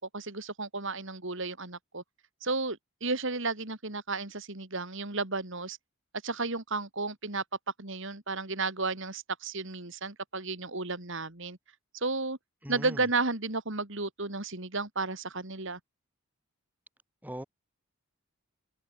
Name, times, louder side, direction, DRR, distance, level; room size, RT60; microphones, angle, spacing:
voice 1, 0.1-2.0 2.4-5.8 6.2-7.4 7.8-11.6 11.9-12.4 12.7-15.8, right 3 dB, 55° right, 2.8 m, -33 dB
voice 2, 12.6-13.1 17.2-17.4, equal, 5° right, 6.1 m, -39 dB
head